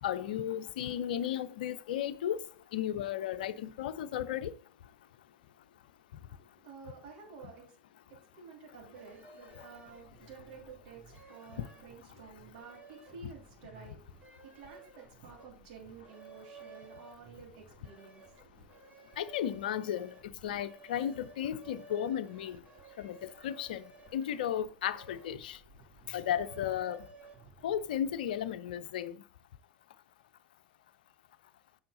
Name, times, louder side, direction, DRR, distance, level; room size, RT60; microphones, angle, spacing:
voice 1, 0.0-2.5 2.7-4.5 9.6-9.7 11.6-11.7 19.2-20.1 20.4-22.6 23.0-23.8 24.1-25.6 26.1-27.1 27.6-29.2, left 10 dB, 65° left, 0.5 m, -34 dB
voice 2, 6.3-7.6 8.4-11.0 11.3-14.0 14.4-18.2, right 5 dB, 55° right, 3.2 m, -51 dB
sound 1, 8.9-28.4, right 3 dB, 30° right, 1.9 m, -56 dB
7.7 x 6.4 x 4.0 m
figure-of-eight pair, 75°, 5 cm